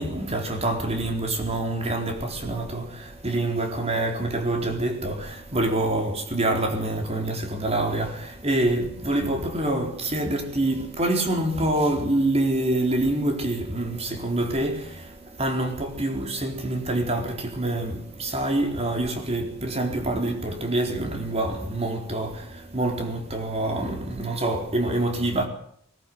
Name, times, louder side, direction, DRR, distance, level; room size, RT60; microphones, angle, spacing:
voice 1, 0.0-25.5, right 1 dB, 30° right, 4.2 m, -26 dB
20.0 x 20.0 x 8.0 m
head